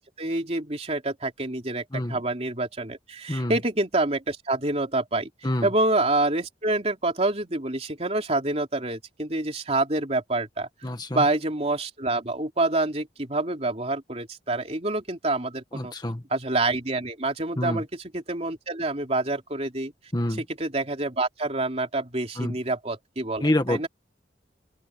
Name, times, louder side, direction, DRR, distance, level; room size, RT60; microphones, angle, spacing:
voice 1, 0.0-5.3 5.6-10.7 11.1-15.9 16.3-17.9 18.1-19.9 20.6-23.9, right 2 dB, 35° right, 3.4 m, -27 dB
voice 2, 10.8-11.2 15.7-16.2 17.6-17.8 20.1-20.4 22.4-22.6 23.4-23.9, left 1 dB, 25° left, 1.7 m, -27 dB
open air
head